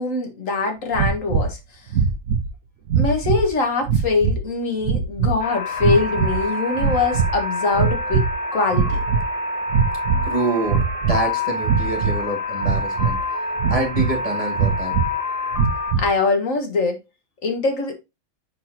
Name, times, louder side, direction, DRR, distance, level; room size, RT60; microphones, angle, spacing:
voice 1, 0.0-1.6 3.0-8.2 8.5-9.0 16.0-17.0 17.4-18.0, left 4 dB, 90° left, 1.9 m, -22 dB
sound 1, 0.9-1.5 1.9-2.5 2.9-3.5 3.8-4.4 4.8-5.4 5.8-6.5 6.7-7.4 7.7-8.4 8.7-9.3 9.7-10.3 10.6-11.2 11.6-12.2 12.6-13.2 13.6-14.2 14.6-15.1 15.5-16.1, right 5 dB, 75° right, 1.0 m, -21 dB
sound 2, 5.4-15.9, left 2 dB, 30° left, 1.2 m, -27 dB
voice 2, 10.1-13.2 13.7-14.9, right 2 dB, 25° right, 2.3 m, -26 dB
6.4 x 6.0 x 2.8 m
omnidirectional pair, 1.3 m